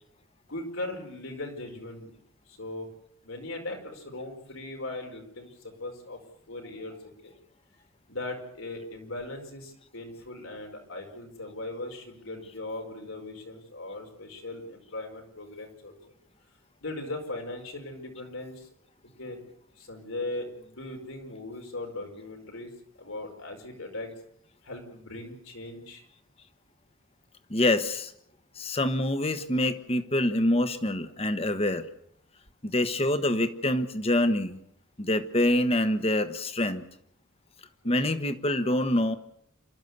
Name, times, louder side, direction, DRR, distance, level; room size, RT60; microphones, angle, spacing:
voice 1, 0.5-2.2 2.5-2.9 3.2-6.2 6.5-7.3 8.1-16.0 16.8-18.7 19.2-19.4 19.7-22.7 23.0-24.1 24.6-26.0 37.8-38.0, left 2 dB, 85° left, 2 dB, 5.0 m, -39 dB
voice 2, 27.5-28.1 28.6-31.9 32.6-34.6 35.0-36.8 37.8-39.1, left 1 dB, 30° left, 10 dB, 1.3 m, -26 dB
28.0 x 13.0 x 8.1 m, 0.72 s
head